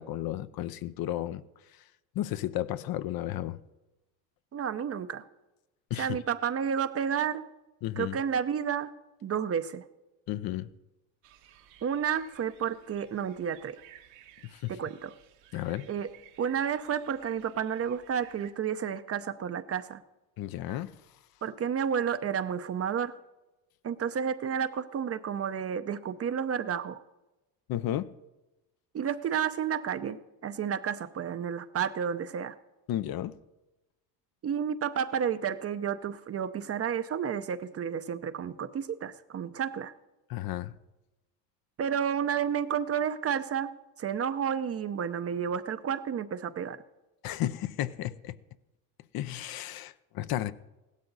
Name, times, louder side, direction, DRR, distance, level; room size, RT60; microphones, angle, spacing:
voice 1, 0.0-1.4 2.1-3.6 5.9-6.2 7.8-8.2 10.3-10.7 14.4-14.7 15.5-15.9 20.4-20.9 27.7-28.1 32.9-33.3 40.3-40.7 47.2-48.4 49.1-50.5, left 13 dB, 55° left, 0.7 m, -33 dB
voice 2, 4.5-5.2 6.0-7.4 8.0-8.9 9.2-9.8 11.8-13.8 14.7-15.1 15.9-16.1 16.4-20.0 21.4-23.1 23.8-27.0 28.9-30.2 30.4-32.5 34.4-39.9 41.8-43.7 44.0-46.8, right 8 dB, 30° right, 0.7 m, -31 dB
sound 1, 11.2-18.5, right 11 dB, 75° right, 1.6 m, -57 dB
16.0 x 12.5 x 4.0 m
supercardioid pair, 90°, 45 cm